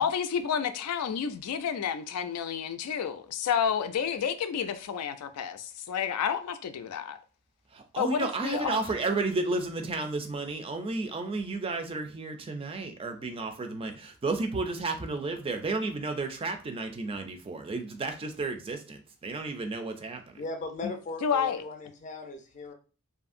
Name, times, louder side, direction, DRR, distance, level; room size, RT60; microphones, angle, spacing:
voice 1, 0.0-7.2 8.0-8.9 20.8-20.9 21.2-21.6, left 7 dB, 85° left, 0.3 m, -30 dB
voice 2, 7.7-20.2, right 3 dB, 25° right, 0.3 m, -32 dB
voice 3, 20.4-22.7, left 3 dB, 35° left, 0.5 m, -38 dB
2.7 x 2.5 x 2.5 m
head